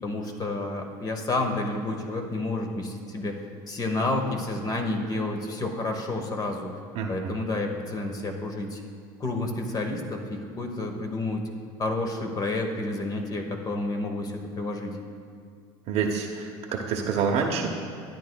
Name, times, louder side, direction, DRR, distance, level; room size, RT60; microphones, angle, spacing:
voice 1, 0.0-3.4 3.7-6.8 7.1-8.8 9.2-11.4 11.8-15.0, left 2 dB, 30° left, 3 dB, 1.1 m, -30 dB
voice 2, 6.9-7.4 15.9-17.7, right 5 dB, 60° right, 0 dB, 0.8 m, -27 dB
12.0 x 9.3 x 2.2 m, 2.1 s
supercardioid pair, 105°, 12 cm